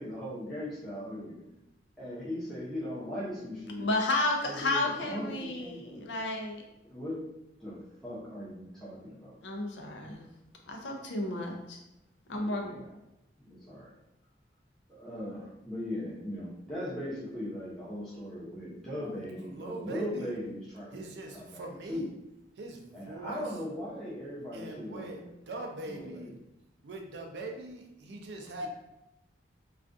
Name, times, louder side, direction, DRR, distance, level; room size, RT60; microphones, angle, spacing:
voice 1, 0.0-1.4 2.0-3.9 4.4-6.1 6.9-7.2 7.6-9.3 12.3-12.9 13.4-13.9 14.9-21.1 21.3-22.1 22.9-25.3 25.9-26.3 28.6-28.7, equal, 5° left, -10 dB, 0.7 m, -39 dB
voice 2, 3.8-6.6 9.4-10.2 10.7-11.8 12.3-12.6, left 2 dB, 80° left, 2 dB, 0.5 m, -32 dB
voice 3, 19.0-20.4 20.9-22.1 22.6-23.6 24.5-26.3 26.8-28.7, right 2 dB, 70° right, 2 dB, 0.4 m, -42 dB
2.3 x 2.3 x 2.5 m, 0.91 s
head